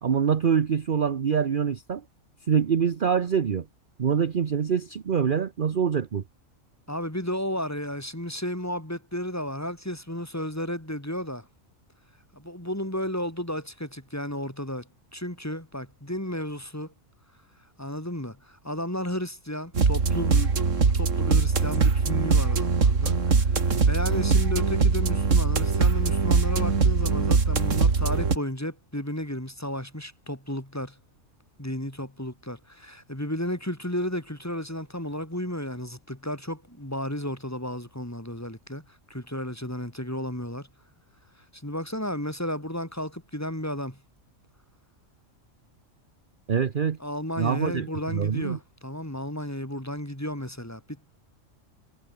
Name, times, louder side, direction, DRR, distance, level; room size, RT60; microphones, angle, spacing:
voice 1, 0.0-2.0 2.5-3.7 4.0-6.2 46.5-47.0 47.4-48.6, right 7 dB, 45° right, 1.0 m, -25 dB
voice 2, 6.9-11.5 12.3-16.9 17.8-20.5 20.9-31.0 31.6-38.8 39.1-40.7 41.5-44.0 47.0-50.8, equal, 10° left, 3.4 m, -33 dB
sound 1, 19.7-28.4, right 4 dB, 70° right, 2.5 m, -22 dB
omnidirectional pair, 1.3 m